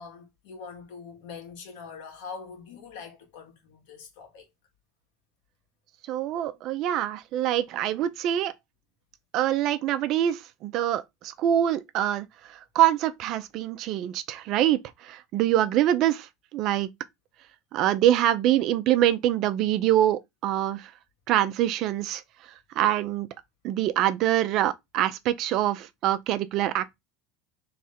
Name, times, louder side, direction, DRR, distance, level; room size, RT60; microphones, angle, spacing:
voice 1, 0.0-4.5 6.5-6.6, left 5 dB, 75° left, 1.7 m, -43 dB
voice 2, 6.1-8.5 9.3-16.9 17.7-20.9 21.3-22.2 22.8-23.3 23.6-26.9, right 12 dB, 55° right, 0.6 m, -25 dB
3.6 x 3.3 x 4.2 m
supercardioid pair, 95°, 0 cm